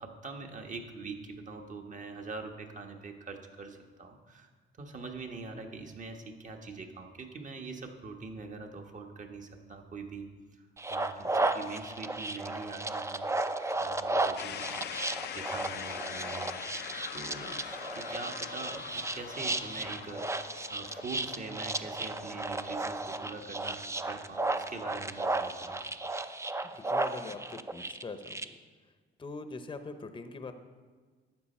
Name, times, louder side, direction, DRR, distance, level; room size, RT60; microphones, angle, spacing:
voice 1, 0.0-4.5 4.8-13.3 13.8-14.9 15.3-16.5 17.1-25.8 27.3-27.4, right 4 dB, 40° right, 3 dB, 1.3 m, -43 dB
sound 1, 10.8-28.4, right 2 dB, 15° right, 0.5 m, -34 dB
sound 2, 14.4-24.2, left 10 dB, 55° left, 0.5 m, -43 dB
voice 2, 26.6-28.5 29.2-30.5, left 3 dB, 25° left, 8 dB, 0.8 m, -43 dB
12.0 x 8.1 x 4.3 m, 1.4 s
cardioid pair, 90°, 20 cm